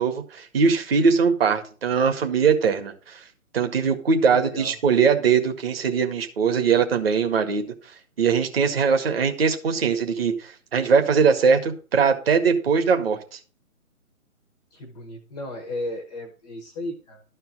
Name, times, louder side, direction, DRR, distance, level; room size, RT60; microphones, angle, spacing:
voice 1, 0.0-3.2 3.5-7.7 8.2-13.2, right 5 dB, 40° right, 6 dB, 2.0 m, -21 dB
voice 2, 4.3-4.7 14.7-17.2, left 1 dB, 5° left, 2 dB, 0.5 m, -34 dB
12.5 x 4.5 x 7.4 m, 0.38 s
figure-of-eight pair, 145°, 43 cm